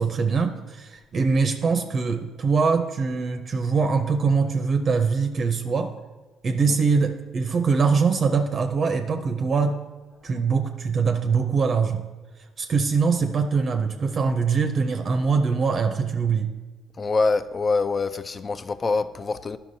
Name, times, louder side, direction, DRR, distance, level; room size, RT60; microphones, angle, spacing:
voice 1, 0.0-5.9 6.4-9.8 10.2-12.0 12.6-16.5, right 5 dB, 50° right, 0.6 m, -23 dB
voice 2, 17.0-19.6, left 3 dB, 35° left, 0.4 m, -25 dB
11.0 x 5.7 x 2.7 m
supercardioid pair, 65°, 0 cm